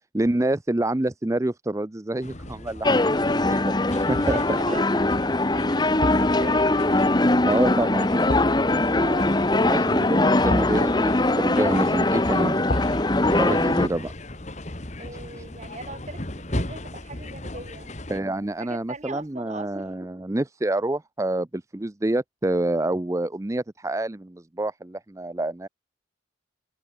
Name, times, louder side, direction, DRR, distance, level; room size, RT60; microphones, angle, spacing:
voice 1, 0.1-3.1 3.4-3.7 4.1-4.4 7.5-8.1 9.5-12.6 13.2-14.1 18.1-25.7, right 1 dB, 15° right, 0.5 m, -27 dB
sound 1, 2.2-18.2, left 1 dB, 35° left, 2.0 m, -37 dB
sound 2, 2.8-13.9, left 2 dB, 20° left, 1.0 m, -21 dB
voice 2, 2.9-3.4 4.0-6.9 8.6-9.3 15.0-18.0 18.6-19.7, right 2 dB, 35° right, 2.5 m, -40 dB
sound 3, 4.2-4.6 6.0-17.0 17.3-17.5, left 1 dB, 55° left, 3.5 m, -36 dB
head